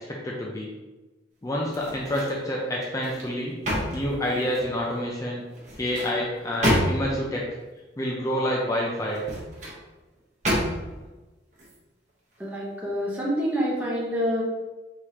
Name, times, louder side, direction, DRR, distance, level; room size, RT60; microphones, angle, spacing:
voice 1, 0.1-0.7 1.4-3.5 3.9-5.4 5.8-7.4 8.0-9.2, equal, 20° left, -3 dB, 0.5 m, -28 dB
sound 1, 1.6-2.4 2.8-4.8 5.5-7.3 9.0-9.8 10.4-11.0 11.5-11.7, equal, 40° right, 1.1 m, -29 dB
voice 2, 12.4-14.4, equal, 10° right, -6 dB, 0.9 m, -27 dB
4.7 x 3.6 x 2.9 m, 1.1 s
head